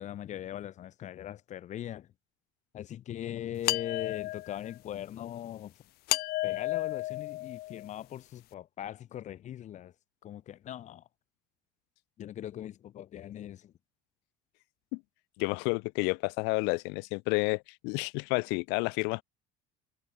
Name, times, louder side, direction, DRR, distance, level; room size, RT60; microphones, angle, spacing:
voice 1, 0.0-2.1 2.7-5.8 6.4-9.9 10.2-11.1 12.2-13.7, left 11 dB, 45° left, 7.5 m, -40 dB
sound 1, 3.6-4.7 6.1-8.0, left 19 dB, 65° left, 2.7 m, -33 dB
voice 2, 15.4-19.2, left 32 dB, 85° left, 2.1 m, -30 dB
cardioid pair, 150°, 17 cm